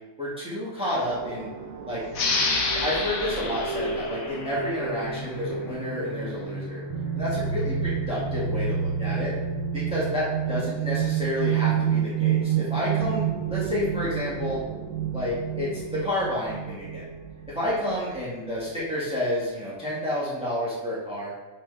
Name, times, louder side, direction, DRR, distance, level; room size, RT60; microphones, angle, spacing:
voice 1, 0.2-1.5 1.9-2.0 2.7-6.8 7.1-9.3 9.7-14.6 15.1-17.1 17.5-21.3, left 1 dB, 5° right, -8 dB, 1.7 m, -30 dB
sound 1, 1.0-18.2, right 7 dB, 85° right, 1.3 m, -30 dB
sound 2, 2.1-5.4, left 3 dB, 85° left, 1.4 m, -29 dB
6.5 x 6.0 x 3.3 m, 1.1 s
omnidirectional pair, 1.4 m